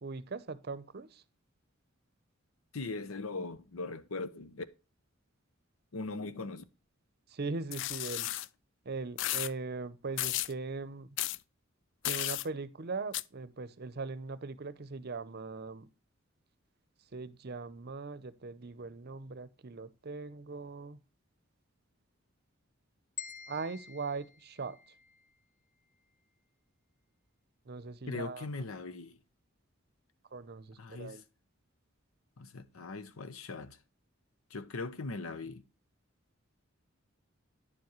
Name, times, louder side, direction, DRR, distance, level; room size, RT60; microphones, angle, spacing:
voice 1, 0.0-1.2 7.3-8.3 8.8-11.2 12.0-15.9 17.1-21.0 23.5-24.8 27.6-28.5 30.3-31.2, right 4 dB, 50° right, 0.6 m, -40 dB
voice 2, 2.7-4.6 5.9-6.6 28.1-29.2 30.8-31.2 32.4-33.8 34.5-35.6, left 3 dB, 85° left, 0.8 m, -40 dB
Breaking paper, 7.7-8.5 9.2-9.5 10.2-10.5 11.2-11.4 12.0-12.5 13.1-13.2, left 15 dB, 60° left, 0.3 m, -33 dB
sound 1, 23.2-25.4, left 7 dB, 35° left, 0.7 m, -47 dB
10.0 x 7.2 x 3.0 m
head